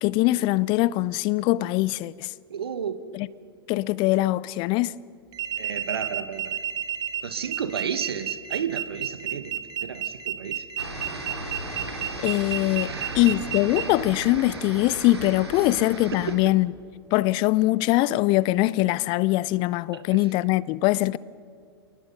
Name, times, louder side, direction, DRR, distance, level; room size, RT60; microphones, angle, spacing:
voice 1, 0.0-2.3 3.1-3.3 3.7-4.9 12.2-16.7 17.1-21.2, left 17 dB, 35° left, 0.5 m, -22 dB
voice 2, 2.5-3.0 5.6-6.6 7.2-10.7 12.8-13.2 16.1-16.4 20.1-20.2, right 7 dB, 70° right, 1.3 m, -32 dB
sound 1, 5.3-13.8, right 11 dB, 30° right, 1.0 m, -31 dB
sound 2, 10.8-16.3, right 1 dB, 85° right, 2.9 m, -36 dB
27.5 x 19.5 x 5.5 m
figure-of-eight pair, 95°, 13 cm